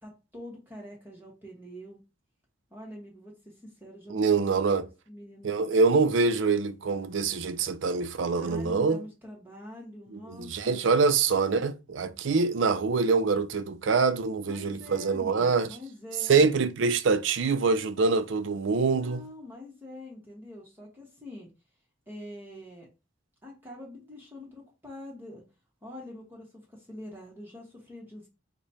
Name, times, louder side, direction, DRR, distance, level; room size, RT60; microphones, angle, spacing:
voice 1, 0.0-2.0 2.7-4.4 5.1-5.8 8.3-10.9 14.5-16.5 18.9-21.5 22.1-22.9 23.4-25.4 25.8-28.3, left 1 dB, 10° right, 1.1 m, -45 dB
voice 2, 4.1-4.9 5.4-9.0 10.1-15.7 16.3-19.2, right 4 dB, 85° right, 0.5 m, -25 dB
4.9 x 2.2 x 4.1 m
head